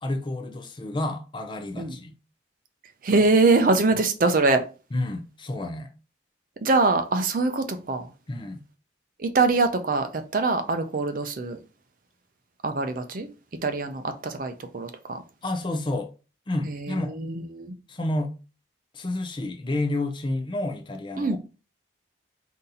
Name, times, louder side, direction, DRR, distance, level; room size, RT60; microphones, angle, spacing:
voice 1, 0.0-2.1 4.9-5.9 8.3-8.6 15.4-16.1 16.5-17.1 17.9-18.3 18.9-21.4, left 2 dB, 25° left, 0.5 m, -30 dB
voice 2, 3.0-4.6 6.6-8.1 9.2-11.6 12.6-13.3 13.6-15.2 16.6-17.7 21.2-21.4, right 3 dB, 45° right, 0.5 m, -23 dB
4.0 x 2.7 x 3.9 m
head